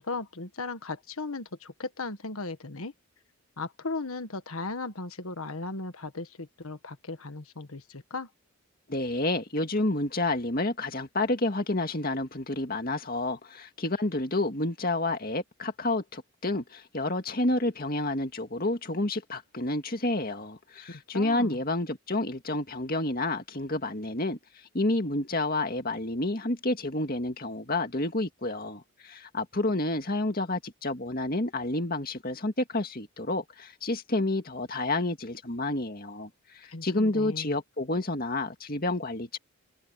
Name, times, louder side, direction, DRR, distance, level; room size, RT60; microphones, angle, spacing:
voice 1, 0.0-2.9 3.6-8.3 20.9-21.6 36.7-37.6, left 3 dB, 75° left, 1.6 m, -37 dB
voice 2, 8.9-24.4 24.7-39.4, left 2 dB, 40° left, 2.1 m, -29 dB
head